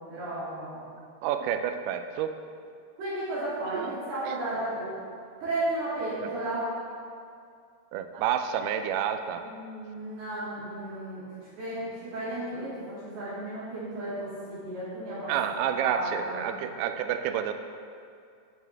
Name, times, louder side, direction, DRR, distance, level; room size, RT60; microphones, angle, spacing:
voice 1, 0.1-0.8 3.0-5.0 5.4-6.7 9.4-11.2 11.6-15.5 15.8-16.4, right 1 dB, 65° right, -11 dB, 4.7 m, -34 dB
voice 2, 1.2-2.4 3.7-3.9 4.2-4.4 7.9-9.5 15.3-17.5, right 9 dB, 85° right, 8 dB, 2.2 m, -29 dB
18.5 x 6.4 x 3.5 m, 2.3 s
omnidirectional pair, 5.0 m